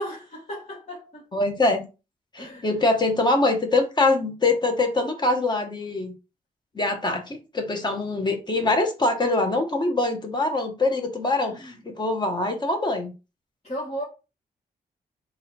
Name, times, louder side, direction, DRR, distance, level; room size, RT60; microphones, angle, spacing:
voice 1, 0.0-1.2 2.4-2.7 11.4-11.7 13.6-14.0, equal, 45° left, 2.0 m, -34 dB
voice 2, 1.3-1.8 2.3-6.1 6.7-13.1, left 2 dB, 30° left, 1.3 m, -24 dB
3.9 x 2.7 x 4.3 m
cardioid pair, 85°, 15 cm